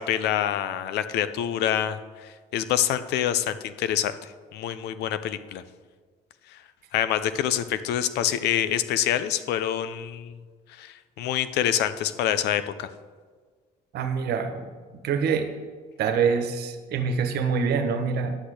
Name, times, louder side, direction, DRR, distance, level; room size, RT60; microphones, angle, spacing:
voice 1, 0.0-4.1 4.5-5.6 6.9-10.4 10.8-12.9, left 10 dB, 80° left, 12 dB, 0.7 m, -26 dB
voice 2, 13.9-14.7 15.0-15.5 16.0-18.3, right 6 dB, 70° right, 7 dB, 1.3 m, -25 dB
10.0 x 6.3 x 8.3 m, 1.5 s
cardioid pair, 110°, 17 cm